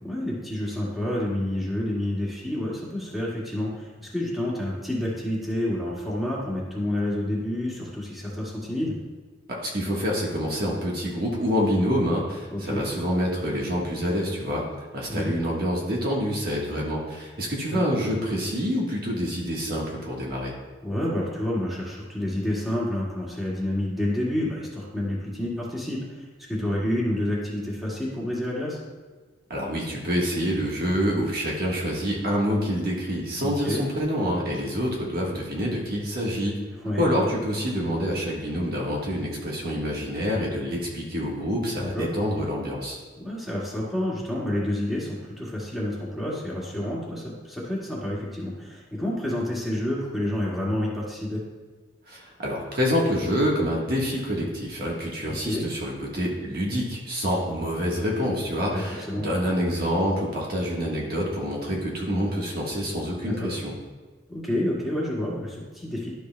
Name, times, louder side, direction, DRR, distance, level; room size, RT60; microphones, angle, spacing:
voice 1, 0.0-9.0 12.5-12.8 15.1-15.4 17.7-17.8 20.8-28.8 33.4-33.8 36.8-37.3 41.7-42.1 43.2-51.4 55.3-55.7 58.7-59.3 63.3-63.6 64.3-66.1, left 1 dB, ahead, -6 dB, 1.9 m, -29 dB
voice 2, 9.5-14.6 14.9-20.5 29.5-36.6 37.0-43.0 52.1-63.7, equal, 55° right, -2 dB, 1.4 m, -27 dB
12.0 x 6.7 x 2.2 m, 1.4 s
head